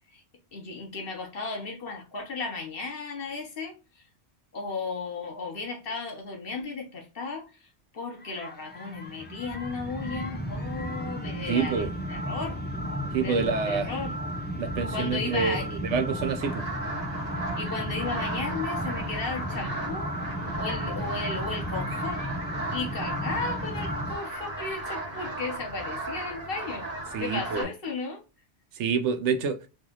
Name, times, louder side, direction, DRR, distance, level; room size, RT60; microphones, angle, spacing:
voice 1, 0.5-3.7 4.5-7.5 7.9-12.6 13.2-14.1 14.9-16.0 17.6-20.1 20.6-22.2 22.7-26.8 27.2-28.2, left 4 dB, 55° left, 1.1 m, -35 dB
sound 1, 8.2-24.1, equal, 15° left, 0.3 m, -34 dB
voice 2, 11.5-11.9 13.1-13.9 14.6-16.6 27.1-27.7 28.7-29.6, right 5 dB, 75° right, 0.9 m, -27 dB
sound 2, 16.4-27.6, right 2 dB, 35° right, 1.3 m, -36 dB
3.1 x 2.6 x 3.7 m
omnidirectional pair, 1.2 m